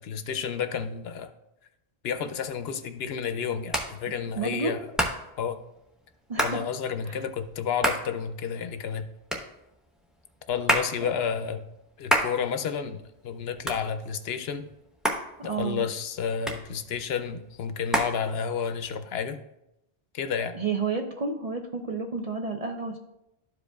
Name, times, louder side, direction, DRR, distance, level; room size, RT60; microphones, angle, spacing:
voice 1, 0.0-1.3 2.0-4.9 5.4-5.6 6.4-9.1 10.5-11.6 12.0-13.0 13.2-14.7 15.4-19.4 20.1-20.5, left 7 dB, 70° left, 9 dB, 0.8 m, -31 dB
Hands, 2.2-18.9, equal, ahead, 0.7 m, -32 dB
voice 2, 4.4-4.8 6.3-6.6 15.4-15.8 20.5-23.0, right 4 dB, 45° right, 3 dB, 0.5 m, -30 dB
12.5 x 5.0 x 2.3 m, 0.86 s
omnidirectional pair, 1.1 m